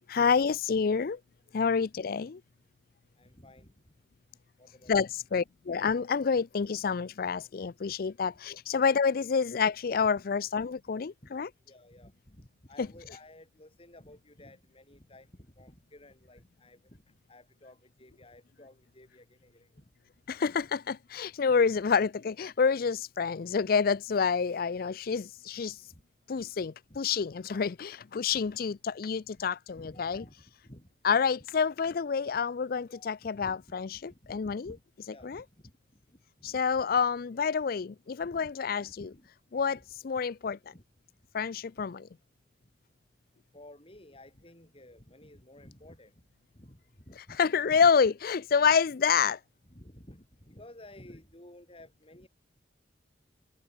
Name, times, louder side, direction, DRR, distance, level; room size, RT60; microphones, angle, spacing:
voice 1, 0.1-1.2 1.5-2.4 4.9-11.5 12.8-12.9 20.3-25.8 26.3-30.2 31.0-34.7 35.2-35.4 36.4-39.1 39.5-40.6 41.3-42.1 47.3-49.4, left 6 dB, 55° left, 0.4 m, -28 dB
voice 2, 3.2-3.7 4.6-5.1 7.8-7.9 11.2-11.3 11.7-17.0 17.3-19.9 20.5-20.6 25.9-26.0 26.6-27.0 27.5-27.7 28.3-28.6 29.7-30.3 30.7-30.9 32.9-33.6 33.9-34.8 35.1-35.7 36.1-36.6 36.9-37.2 38.2-38.5 38.8-39.3 39.7-39.9 40.5-40.8 41.8-41.9 43.5-46.2 46.5-46.8 47.1-47.4 47.7-47.9 49.7-52.3, left 1 dB, 35° left, 6.3 m, -53 dB
head